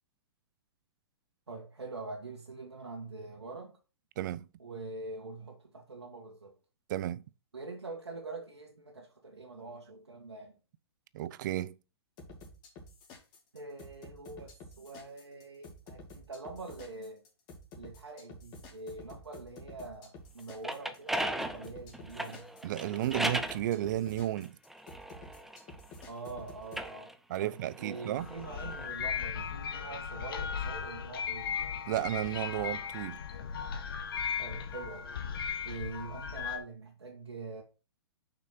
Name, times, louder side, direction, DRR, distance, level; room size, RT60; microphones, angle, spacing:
voice 1, 1.5-3.7 4.6-6.6 7.5-10.6 13.5-17.2 17.8-22.5 26.1-27.1 27.4-31.6 34.4-35.1 35.6-37.6, right 3 dB, 80° right, 1.8 m, -44 dB
voice 2, 6.9-7.2 11.1-11.8 22.6-24.6 27.3-28.3 31.9-33.2, right 13 dB, 45° right, 0.5 m, -33 dB
sound 1, 12.2-26.9, left 2 dB, 35° left, 3.0 m, -50 dB
sound 2, 20.4-23.6 24.4-26.1 26.6-28.9, right 1 dB, ahead, 0.7 m, -37 dB
sound 3, 28.2-36.6, left 7 dB, 60° left, 1.4 m, -37 dB
6.4 x 6.1 x 4.3 m
figure-of-eight pair, 120°, 14 cm